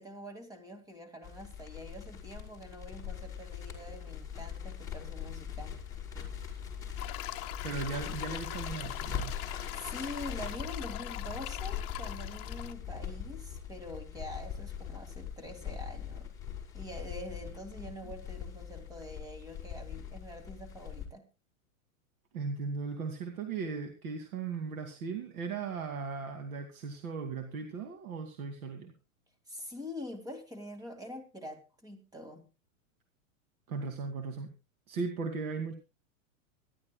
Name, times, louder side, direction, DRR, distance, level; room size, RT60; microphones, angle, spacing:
voice 1, 0.0-5.8 9.7-16.3 16.7-21.3 29.5-32.4, left 1 dB, 10° right, 6 dB, 2.2 m, -45 dB
Crackle, 1.2-21.1, left 8 dB, 10° left, 3.7 m, -41 dB
sound 1, 7.0-12.7, left 16 dB, 40° left, 1.0 m, -42 dB
voice 2, 7.6-9.4 18.0-18.1 22.3-28.9 33.7-34.5 34.9-35.7, right 4 dB, 80° right, 5 dB, 2.5 m, -37 dB
25.5 x 12.0 x 2.3 m, 0.28 s
supercardioid pair, 155°, 42 cm